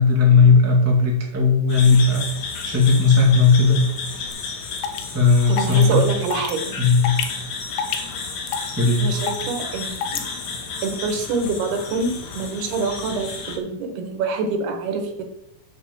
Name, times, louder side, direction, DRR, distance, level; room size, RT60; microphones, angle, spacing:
voice 1, 0.0-2.2 2.6-3.8 5.1-6.0 6.8-7.1 8.7-9.1, left 4 dB, 10° right, -1 dB, 0.8 m, -16 dB
sound 1, 1.7-13.6, left 4 dB, 55° left, 2.6 m, -32 dB
sound 2, 4.3-4.4 4.8-5.0 5.6-5.8 6.3-6.5 7.0-7.3 7.8-8.1 8.5-8.7 9.3-9.5 10.0-10.2, left 8 dB, 85° left, 2.9 m, -26 dB
voice 2, 5.5-6.7 9.0-10.2 10.8-15.2, right 4 dB, 80° right, 5 dB, 3.5 m, -26 dB
8.3 x 6.8 x 7.3 m, 0.89 s
omnidirectional pair, 4.5 m